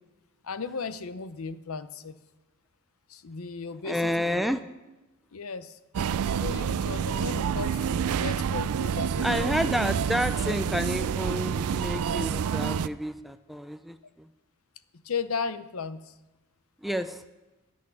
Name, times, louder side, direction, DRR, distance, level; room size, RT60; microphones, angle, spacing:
voice 1, 0.4-2.1 3.1-4.5 5.3-5.8 6.3-9.5 12.8-12.9 15.0-16.1, left 5 dB, 70° left, 13 dB, 0.7 m, -35 dB
voice 2, 3.8-4.6 9.2-14.3 16.8-17.2, equal, ahead, 10 dB, 0.4 m, -30 dB
sound 1, 5.9-12.9, right 7 dB, 85° right, 0.4 m, -28 dB
14.0 x 6.4 x 9.8 m, 1.1 s
head